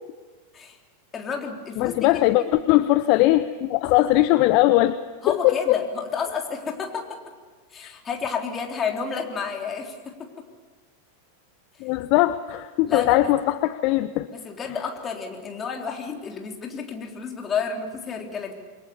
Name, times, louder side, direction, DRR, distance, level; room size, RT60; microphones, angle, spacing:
voice 1, 1.1-2.2 2.5-2.6 5.2-7.2 7.7-10.3 12.9-13.3 14.3-18.6, left 5 dB, 20° left, 2 dB, 3.7 m, -31 dB
voice 2, 1.8-5.0 5.3-5.8 7.8-7.9 11.8-14.3, left 16 dB, 45° left, 13 dB, 0.8 m, -20 dB
28.0 x 23.0 x 7.1 m, 1.4 s
figure-of-eight pair, 90°, 0 cm